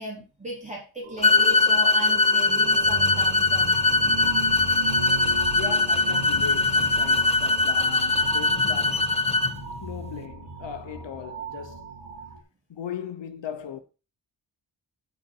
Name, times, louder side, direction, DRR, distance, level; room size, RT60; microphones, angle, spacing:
voice 1, 0.0-3.8, right 1 dB, 15° right, 3.3 m, -37 dB
sound 1, 1.0-12.4, right 5 dB, 85° right, 2.3 m, -37 dB
sound 2, 1.2-9.5, left 3 dB, 15° left, 0.4 m, -21 dB
sound 3, 3.4-5.0 6.0-7.4 7.8-10.2, left 5 dB, 45° left, 1.4 m, -42 dB
voice 2, 5.5-9.3 9.8-11.9 12.7-13.8, left 8 dB, 80° left, 1.1 m, -38 dB
11.5 x 4.4 x 4.8 m
wide cardioid pair, 170°, 43 cm